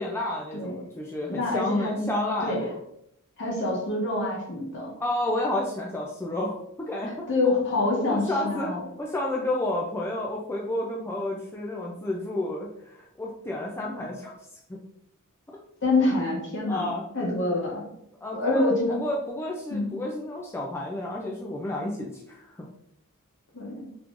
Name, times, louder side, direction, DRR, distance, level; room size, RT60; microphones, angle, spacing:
voice 1, 0.0-2.7 5.0-6.5 6.9-7.1 8.1-8.7 9.0-14.3 14.7-14.8 16.7-17.0 18.2-22.5, left 1 dB, 10° left, -2 dB, 0.3 m, -30 dB
voice 2, 1.3-2.1 2.4-2.6 3.4-4.9 7.0-8.8 15.8-16.9 17.1-17.8 18.3-19.0 19.7-20.0 23.5-23.8, left 2 dB, 55° left, -3 dB, 1.1 m, -26 dB
3.6 x 3.0 x 2.4 m, 0.78 s
head